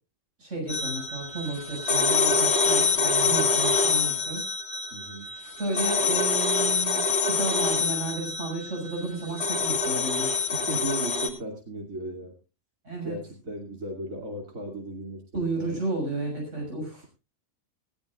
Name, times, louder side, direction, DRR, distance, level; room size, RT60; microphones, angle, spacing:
voice 1, 0.4-4.5 5.6-10.4 12.9-13.2 15.3-17.0, right 2 dB, 65° right, 1 dB, 7.0 m, -32 dB
sound 1, 0.7-11.3, left 4 dB, 55° left, 2.8 m, -25 dB
voice 2, 4.9-5.3 10.5-12.3 13.0-15.8 16.9-17.0, right 1 dB, 85° right, 2 dB, 3.1 m, -36 dB
18.5 x 17.0 x 2.4 m, 0.31 s
omnidirectional pair, 1.4 m